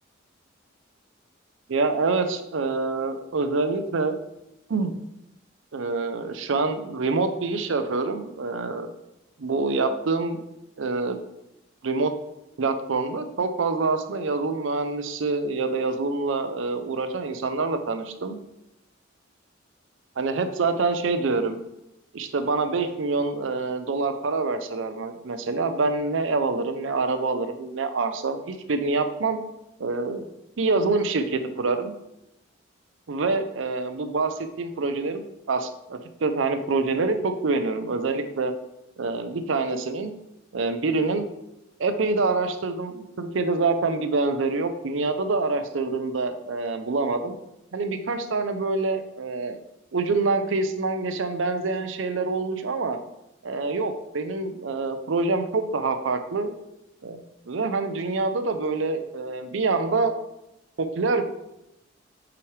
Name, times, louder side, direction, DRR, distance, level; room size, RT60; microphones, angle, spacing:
voice 1, 1.7-4.2 4.7-4.9 5.7-8.9 9.4-10.4 10.8-11.2 11.8-12.1 12.6-18.4 20.2-21.6 22.1-29.4 29.8-30.3 30.6-31.9 33.1-38.5 39.0-40.1 40.5-41.3 41.8-47.3 47.7-49.6 49.9-53.0 53.4-56.5 57.0-60.1 60.8-61.2, right 3 dB, 70° right, 9 dB, 0.5 m, -26 dB
5.7 x 5.0 x 3.2 m, 0.89 s
head